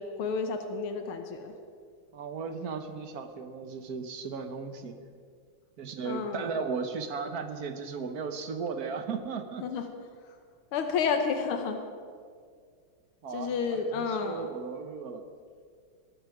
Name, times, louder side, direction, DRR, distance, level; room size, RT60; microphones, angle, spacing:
voice 1, 0.0-1.5 6.1-6.5 9.6-9.8 10.7-11.8 13.3-14.5, left 5 dB, 85° left, 6 dB, 1.9 m, -30 dB
voice 2, 2.1-5.0 5.8-9.6 13.2-15.2, right 5 dB, 55° right, 7 dB, 1.3 m, -36 dB
18.5 x 13.0 x 4.9 m, 2.1 s
omnidirectional pair, 2.3 m